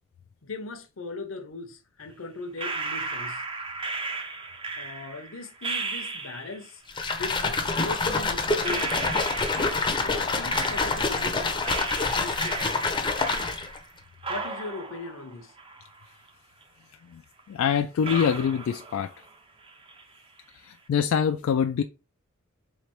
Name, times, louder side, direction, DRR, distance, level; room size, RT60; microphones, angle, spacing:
voice 1, 0.4-3.4 4.8-6.8 7.1-8.9 9.5-11.7 12.1-12.9 14.3-15.5, left 3 dB, 70° left, 0.7 m, -39 dB
sound 1, 2.6-6.7 7.8-7.9 8.6-11.3 11.6-13.9 14.2-16.3 16.6-16.7 17.4-17.5 18.0-19.4 19.6-20.2, right 3 dB, 25° right, 0.5 m, -35 dB
sound 2, 6.9-13.8, left 3 dB, 25° left, 0.5 m, -27 dB
voice 2, 17.5-19.1 20.6-21.8, left 7 dB, 90° left, 0.3 m, -25 dB
3.8 x 3.2 x 2.9 m
head